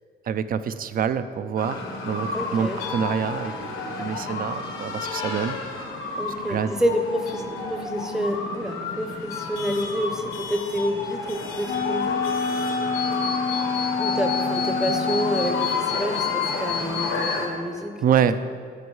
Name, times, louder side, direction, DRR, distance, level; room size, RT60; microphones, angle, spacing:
voice 1, 0.3-5.6 6.5-6.7 13.6-13.8 18.0-18.6, right 8 dB, 45° right, 12 dB, 0.4 m, -26 dB
sound 1, 1.6-17.5, left 4 dB, 85° left, 1.1 m, -30 dB
voice 2, 2.3-2.8 6.2-12.2 14.0-18.0, equal, 5° right, 5 dB, 0.6 m, -28 dB
Wind instrument woodwind instrument, 11.6-16.0, left 4 dB, 55° left, 0.6 m, -27 dB
9.6 x 7.0 x 3.2 m, 2.1 s
cardioid pair, 90°, 20 cm